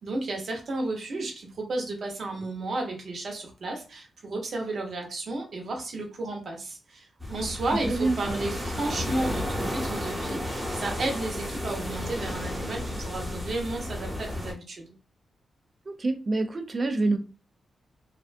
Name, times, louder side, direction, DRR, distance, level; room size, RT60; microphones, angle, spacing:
voice 1, 0.0-14.9, right 2 dB, 50° right, 1 dB, 0.8 m, -33 dB
sound 1, 7.2-14.5, left 1 dB, ahead, 1.0 m, -33 dB
voice 2, 7.8-8.4 15.9-17.2, right 2 dB, 30° right, 7 dB, 0.4 m, -26 dB
2.5 x 2.2 x 2.5 m, 0.34 s
wide cardioid pair, 165°, 0 cm